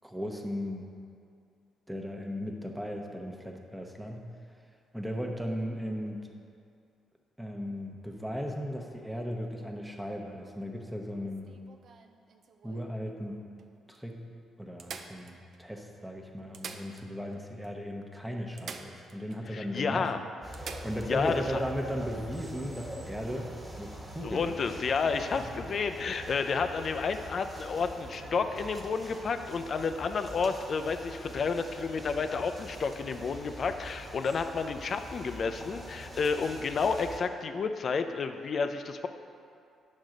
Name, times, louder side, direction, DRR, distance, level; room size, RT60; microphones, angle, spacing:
voice 1, 0.0-0.9 1.9-4.3 4.9-6.3 7.4-11.6 12.6-13.4 13.9-14.2 14.6-20.1 20.5-23.5 23.8-24.6 25.4-25.5, equal, 5° right, 1 dB, 0.9 m, -37 dB
sound 1, 11.3-12.9 13.6-13.7 13.9-14.0 14.8-15.8 16.4-17.4 17.6-17.7 18.6-19.4 19.8-19.9 20.5-21.1 23.1-23.2, right 5 dB, 60° right, 0.5 m, -46 dB
voice 2, 19.5-20.2 21.1-21.6 24.2-39.1, left 5 dB, 50° left, 8 dB, 0.5 m, -31 dB
sound 2, 20.4-37.2, equal, 20° right, 1.4 m, -44 dB
9.3 x 6.2 x 3.9 m, 2.4 s
cardioid pair, 90°, 0 cm